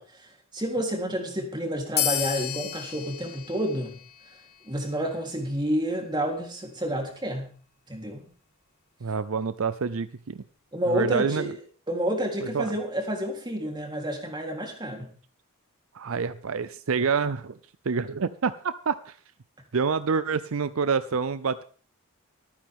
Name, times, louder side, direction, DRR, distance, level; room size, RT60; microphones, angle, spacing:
voice 1, 0.0-4.0 4.6-7.5 7.9-8.3 10.7-11.5 11.9-15.1, equal, 20° right, 1 dB, 3.5 m, -29 dB
sound 1, 2.0-5.0, left 11 dB, 45° left, 1.6 m, -32 dB
voice 2, 9.0-10.4 10.9-11.5 12.4-12.7 15.9-17.6 17.9-19.2 19.7-21.6, right 5 dB, 70° right, 14 dB, 0.6 m, -27 dB
25.0 x 9.5 x 3.7 m, 0.41 s
head